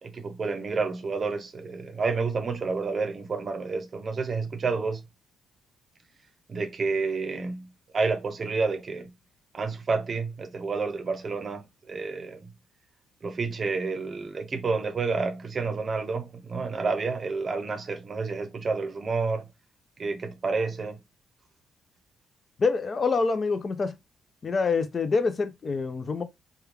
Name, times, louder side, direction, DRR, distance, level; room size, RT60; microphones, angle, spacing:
voice 1, 0.0-5.0 6.5-9.1 9.5-12.5 13.2-19.5 20.0-21.0, right 4 dB, 40° right, 0.7 m, -29 dB
voice 2, 22.6-23.9 24.4-26.2, left 4 dB, 40° left, 0.5 m, -26 dB
3.2 x 2.2 x 3.4 m
cardioid pair, 90°, 0 cm